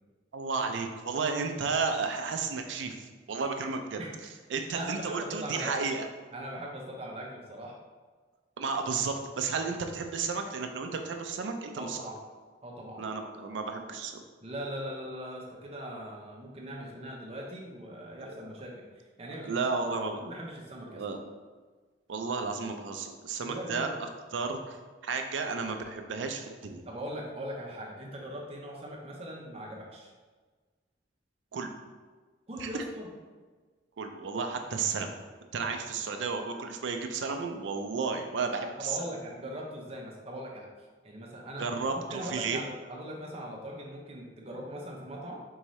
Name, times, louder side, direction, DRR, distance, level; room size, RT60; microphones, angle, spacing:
voice 1, 0.3-4.0 4.5-6.1 8.6-12.1 13.0-14.2 18.2-18.3 19.4-20.2 20.9-21.2 22.1-23.9 24.3-26.8 31.5-31.7 32.6-32.8 34.0-35.2 35.5-39.0 41.6-42.6, right 4 dB, 85° right, 5 dB, 0.4 m, -33 dB
voice 2, 4.7-5.7 6.3-7.8 11.8-12.2 12.6-13.0 14.4-19.6 20.2-21.0 23.4-24.0 26.9-30.1 32.5-33.1 38.8-40.7 41.0-45.4, equal, 35° right, -2 dB, 0.7 m, -40 dB
4.6 x 2.7 x 3.1 m, 1.4 s
head